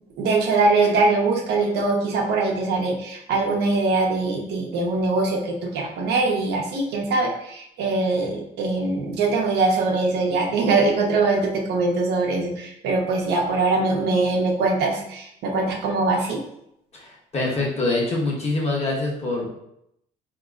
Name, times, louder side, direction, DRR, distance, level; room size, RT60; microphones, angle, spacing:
voice 1, 0.2-16.4, right 3 dB, 75° right, 0 dB, 0.8 m, -22 dB
voice 2, 16.9-19.5, left 2 dB, 40° left, -3 dB, 1.2 m, -25 dB
4.0 x 2.9 x 2.4 m, 0.77 s
cardioid pair, 110°, 17 cm